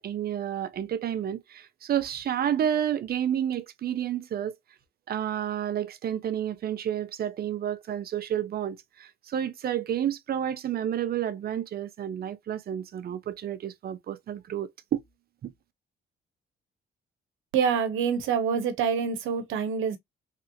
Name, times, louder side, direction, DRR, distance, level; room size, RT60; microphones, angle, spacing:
voice 1, 0.0-4.6 5.1-15.0 15.4-15.5, right 10 dB, 50° right, 0.5 m, -30 dB
voice 2, 17.5-20.0, right 6 dB, 90° right, 0.8 m, -26 dB
3.2 x 2.7 x 2.6 m
cardioid pair, 90°, 20 cm